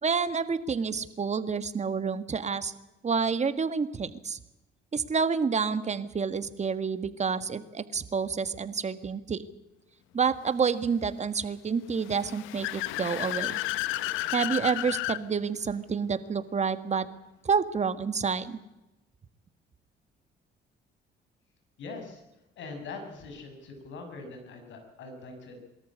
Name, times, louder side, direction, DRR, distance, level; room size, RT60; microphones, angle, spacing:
voice 1, 0.0-2.7 3.0-4.4 4.9-9.4 10.1-13.6 14.3-17.1 17.4-18.6, right 5 dB, 35° right, 12 dB, 1.7 m, -29 dB
Car / Accelerating revving vroom, 12.0-15.2, left 16 dB, 90° left, 0.9 m, -32 dB
voice 2, 21.8-22.2 22.6-25.6, left 3 dB, 70° left, 4 dB, 6.3 m, -42 dB
22.5 x 13.5 x 9.9 m, 0.98 s
cardioid pair, 85°, 20 cm